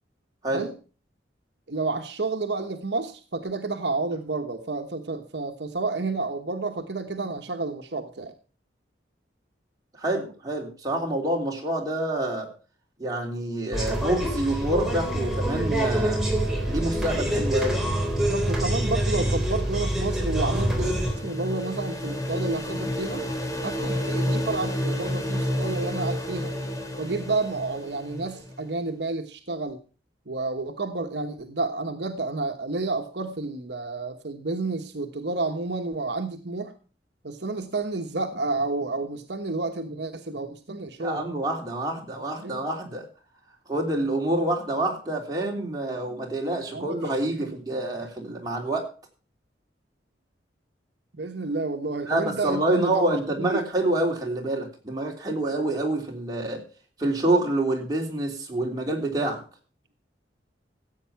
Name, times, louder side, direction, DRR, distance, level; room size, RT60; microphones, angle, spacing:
voice 1, 1.7-8.3 18.1-23.2 23.6-26.5 27.0-29.8 30.3-36.7 37.2-41.3 42.4-42.7 46.7-47.0 47.4-47.5 51.1-53.6, right 3 dB, 70° right, 6 dB, 1.2 m, -30 dB
voice 2, 10.0-12.5 13.0-16.2 16.6-17.8 41.0-43.1 43.7-48.9 52.1-56.6 57.0-59.4, right 1 dB, 20° right, 0 dB, 3.3 m, -27 dB
sound 1, 13.7-21.1, right 1 dB, ahead, 3.7 m, -26 dB
sound 2, 20.0-28.6, equal, 20° left, 1.9 m, -30 dB
15.0 x 8.4 x 5.8 m, 0.36 s
head